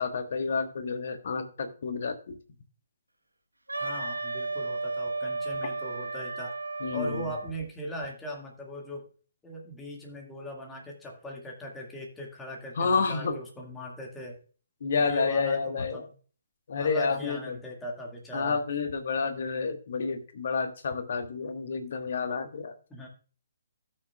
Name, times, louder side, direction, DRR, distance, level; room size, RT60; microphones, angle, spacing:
voice 1, 0.0-2.4 6.8-7.3 12.8-13.4 14.8-16.1 16.7-17.6 18.3-22.7, left 5 dB, 55° left, 7 dB, 1.4 m, -29 dB
Wind instrument woodwind instrument, 3.7-7.5, right 3 dB, 80° right, 1.4 m, -34 dB
voice 2, 3.8-6.5 6.9-9.1 9.4-14.4 15.0-16.0 16.8-18.6 22.9-23.1, equal, 10° left, -1 dB, 2.0 m, -39 dB
16.0 x 6.6 x 2.3 m, 0.39 s
figure-of-eight pair, 130°, 0 cm